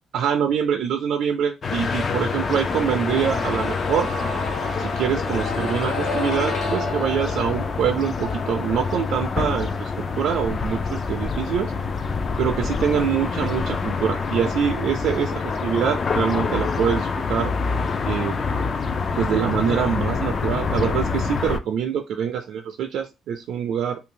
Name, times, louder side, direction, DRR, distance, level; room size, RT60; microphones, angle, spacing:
voice 1, 0.1-4.1 4.8-9.9 10.2-11.7 12.4-17.5 18.1-18.4 19.1-24.0, right 8 dB, 70° right, 5 dB, 0.4 m, -24 dB
sound 1, 1.6-21.6, left 4 dB, 30° left, 0.3 m, -26 dB
sound 2, 2.5-14.3 14.6-14.7, left 3 dB, 50° left, 1.2 m, -33 dB
2.7 x 2.6 x 3.7 m, 0.25 s
cardioid pair, 180°, 0 cm